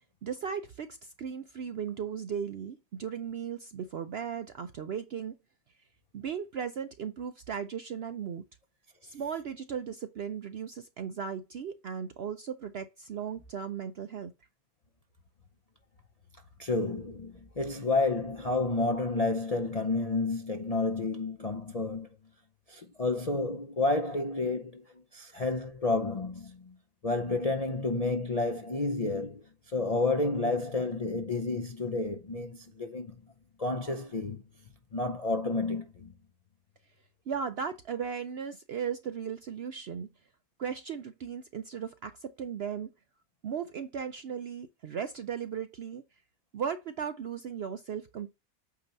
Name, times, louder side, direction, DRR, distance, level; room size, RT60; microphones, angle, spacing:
voice 1, 0.2-5.3 6.1-8.4 9.0-14.3 37.3-40.1 40.6-42.9 43.4-46.0 46.5-48.3, right 7 dB, 65° right, 0.6 m, -36 dB
voice 2, 16.6-22.1 22.7-26.7 27.0-29.4 29.7-33.2 33.6-34.4 34.9-36.1, left 3 dB, 45° left, 0.5 m, -30 dB
8.5 x 2.9 x 5.2 m
omnidirectional pair, 1.6 m